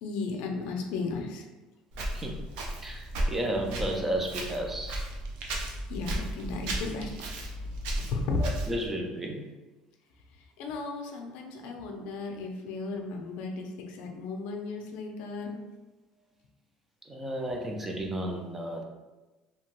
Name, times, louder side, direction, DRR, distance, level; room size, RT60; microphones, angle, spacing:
voice 1, 0.0-1.5 5.5-7.4 8.0-8.4 10.6-15.6, left 3 dB, 65° left, 2 dB, 0.4 m, -35 dB
Walk footsteps, 1.9-8.9, right 1 dB, 70° right, 0.5 m, -35 dB
voice 2, 2.8-5.0 8.4-9.4 17.1-18.8, right 1 dB, 10° right, 2 dB, 0.3 m, -33 dB
2.8 x 2.2 x 2.9 m, 1.2 s
cardioid pair, 160°, 2 cm